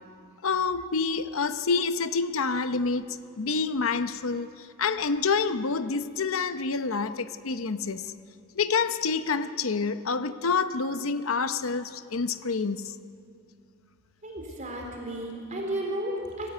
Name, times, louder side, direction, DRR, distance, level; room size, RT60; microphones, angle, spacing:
voice 1, 0.4-3.1 3.4-8.1 8.5-12.9, left 4 dB, 70° left, 0.8 m, -27 dB
voice 2, 14.2-16.5, right 1 dB, 35° right, 3.8 m, -33 dB
25.0 x 15.0 x 9.5 m
head